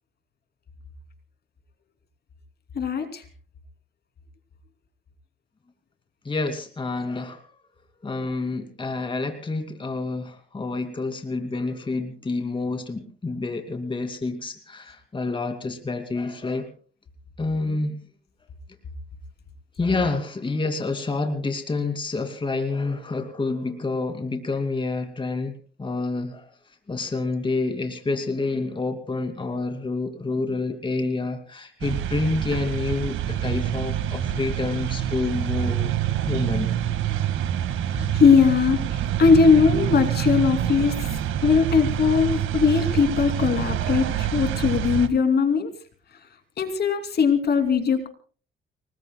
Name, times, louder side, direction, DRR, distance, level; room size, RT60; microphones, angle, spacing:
voice 1, 2.7-3.2 37.9-41.1 41.4-45.7 46.1-46.2 46.6-48.1, left 5 dB, 55° left, 7 dB, 3.0 m, -20 dB
voice 2, 6.2-7.4 8.0-16.7 17.4-18.0 19.8-25.5 25.8-26.5 26.9-35.9 36.2-36.7, left 3 dB, 25° left, 6 dB, 2.6 m, -28 dB
sound 1, 31.8-45.1, right 10 dB, 85° right, 1.8 m, -26 dB
30.0 x 20.5 x 2.3 m, 0.40 s
cardioid pair, 90°, 20 cm